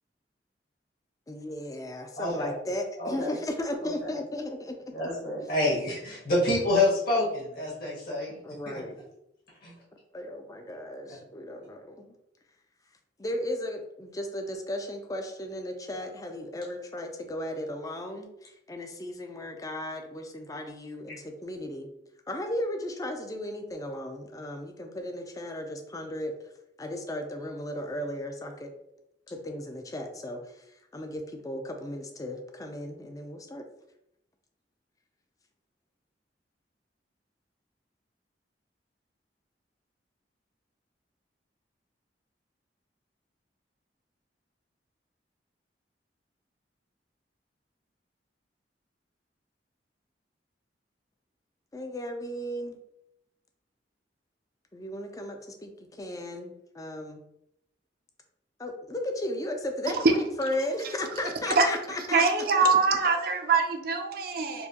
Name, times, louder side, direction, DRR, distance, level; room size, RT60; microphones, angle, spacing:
voice 1, 1.3-4.7 5.4-5.5 8.4-9.0 10.1-12.1 13.2-21.9 22.3-26.3 26.8-28.7 29.3-30.6 30.9-33.6 51.7-52.8 54.7-57.2 58.6-62.2, left 1 dB, 20° left, 4 dB, 0.4 m, -35 dB
voice 2, 2.2-2.6 3.0-3.4 3.8-4.1 4.9-8.4 8.6-8.8 9.6-9.7, left 2 dB, 55° left, -5 dB, 1.5 m, -28 dB
voice 3, 62.1-64.7, right 4 dB, 55° right, 5 dB, 0.5 m, -23 dB
4.5 x 2.2 x 2.8 m, 0.82 s
head